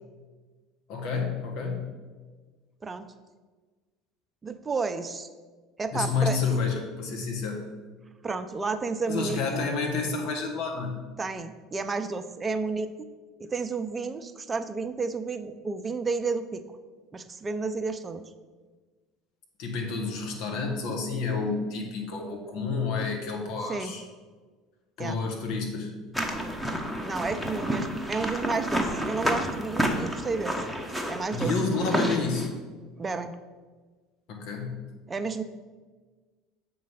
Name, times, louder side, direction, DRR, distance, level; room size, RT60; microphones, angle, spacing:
voice 1, 0.9-1.9 5.9-7.7 9.1-11.1 19.6-24.0 25.0-25.9 31.3-32.5 34.3-34.9, left 4 dB, 65° left, 2 dB, 1.5 m, -29 dB
voice 2, 4.4-5.3 5.8-6.4 8.2-9.6 11.2-13.1 13.4-16.6 17.1-18.2 23.7-23.9 25.0-25.2 27.0-30.5 31.1-31.5 33.0-33.3 35.1-35.4, right 4 dB, 25° right, 9 dB, 0.6 m, -31 dB
sound 1, 26.1-32.5, equal, 5° left, 1.0 m, -30 dB
7.4 x 3.8 x 5.6 m, 1.4 s
hypercardioid pair, 85°, 0 cm